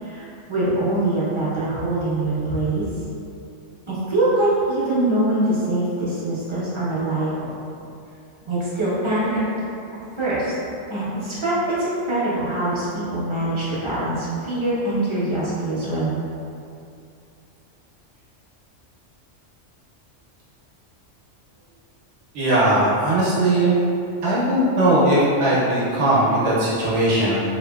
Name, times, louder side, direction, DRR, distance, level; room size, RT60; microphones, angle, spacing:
voice 1, 0.0-2.8 3.9-7.6 8.5-9.4 10.2-10.5 10.9-16.2, right 1 dB, 35° right, -10 dB, 0.5 m, -23 dB
voice 2, 22.3-23.7 24.2-27.4, right 1 dB, 70° right, -8 dB, 1.0 m, -19 dB
2.8 x 2.6 x 2.2 m, 2.5 s
omnidirectional pair, 1.3 m